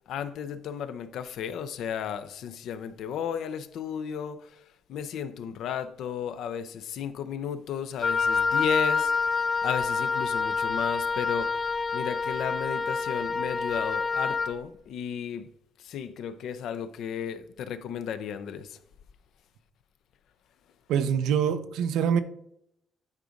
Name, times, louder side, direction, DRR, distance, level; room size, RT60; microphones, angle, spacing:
voice 1, 0.1-4.6 4.9-15.5 15.8-18.8, left 8 dB, 80° left, 0.6 m, -34 dB
Wind instrument woodwind instrument, 8.0-14.5, left 5 dB, 30° left, 0.4 m, -27 dB
voice 2, 20.9-22.2, right 8 dB, 90° right, 0.6 m, -25 dB
9.7 x 4.0 x 5.1 m
cardioid pair, 90°, 0 cm